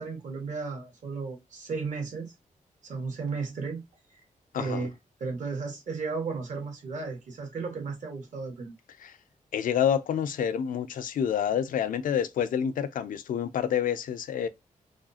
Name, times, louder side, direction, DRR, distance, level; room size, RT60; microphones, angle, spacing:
voice 1, 0.0-2.3 2.8-3.8 4.6-4.9 5.2-8.7, right 4 dB, 65° right, 1.6 m, -34 dB
voice 2, 4.5-4.9 9.0-9.2 9.5-14.5, left 8 dB, 85° left, 0.5 m, -28 dB
4.9 x 2.4 x 2.7 m
wide cardioid pair, 150°, 14 cm